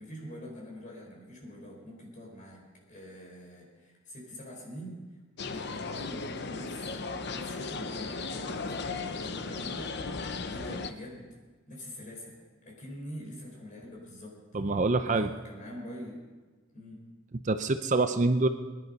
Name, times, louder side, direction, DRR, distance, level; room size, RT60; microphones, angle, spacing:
voice 1, 0.0-5.1 5.4-11.3 11.7-14.4 15.0-16.2 16.7-17.1, equal, 40° left, -2 dB, 4.5 m, -45 dB
sound 1, 5.4-10.9, left 4 dB, 55° left, 0.7 m, -36 dB
voice 2, 14.5-15.3 17.4-18.5, right 3 dB, 35° right, 9 dB, 0.5 m, -25 dB
20.0 x 11.0 x 5.4 m, 1.3 s
head